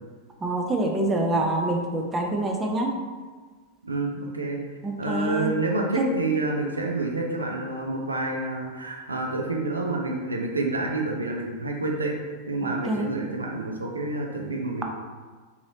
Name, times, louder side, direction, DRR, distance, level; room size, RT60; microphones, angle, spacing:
voice 1, 0.4-2.9 4.8-5.5 6.0-6.1 12.6-13.1, right 2 dB, 15° right, 1 dB, 0.5 m, -26 dB
voice 2, 3.8-4.6 5.0-12.2 12.5-14.8, right 2 dB, 80° right, 0 dB, 0.4 m, -28 dB
4.0 x 2.7 x 2.7 m, 1.4 s
figure-of-eight pair, 90°, 0 cm